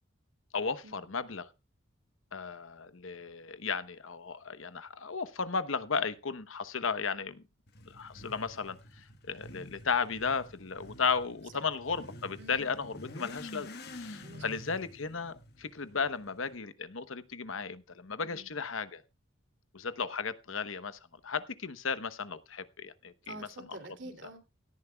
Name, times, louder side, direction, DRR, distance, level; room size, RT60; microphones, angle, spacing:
voice 1, 0.5-1.5 2.3-7.4 7.9-19.0 19.7-23.5, left 5 dB, 75° left, 1.0 m, -35 dB
Motorcycle / Accelerating revving vroom, 7.7-16.6, left 1 dB, 50° left, 1.5 m, -49 dB
voice 2, 14.2-14.6 18.2-18.5 23.2-24.4, right 2 dB, 60° right, 2.9 m, -48 dB
18.0 x 13.5 x 2.3 m
head